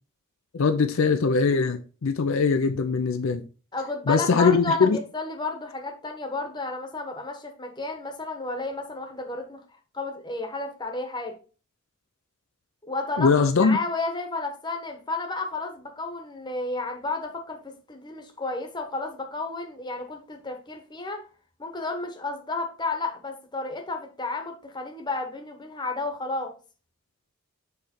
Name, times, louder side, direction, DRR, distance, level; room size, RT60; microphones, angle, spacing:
voice 1, 0.5-3.4 4.1-5.0 13.2-13.8, left 5 dB, 65° left, 0.5 m, -21 dB
voice 2, 3.7-9.6 9.9-11.3 12.8-13.3 13.6-21.3 21.6-26.5, left 3 dB, 20° left, 1.0 m, -32 dB
6.9 x 3.2 x 4.3 m
head